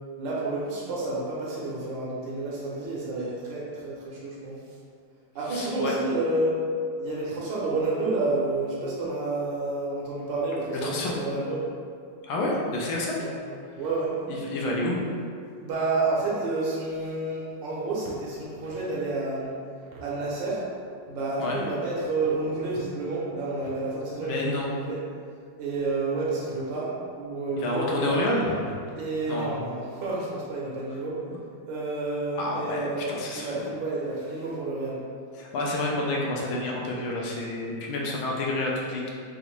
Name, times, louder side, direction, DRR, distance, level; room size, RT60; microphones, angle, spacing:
voice 1, 0.2-4.6 5.3-6.5 7.0-11.6 13.2-13.3 13.8-14.1 15.6-19.6 19.9-20.6 21.1-25.0 25.6-28.5 29.0-31.2 31.7-33.1 33.3-35.0, right 2 dB, 70° right, -5 dB, 1.3 m, -30 dB
voice 2, 5.5-5.9 10.8-11.1 12.2-13.3 14.3-15.0 21.4-21.6 24.2-24.7 27.6-28.5 29.3-29.7 32.4-33.6 35.4-39.1, left 2 dB, 75° left, -3 dB, 1.5 m, -29 dB
5.0 x 2.5 x 3.0 m, 2.2 s
omnidirectional pair, 2.4 m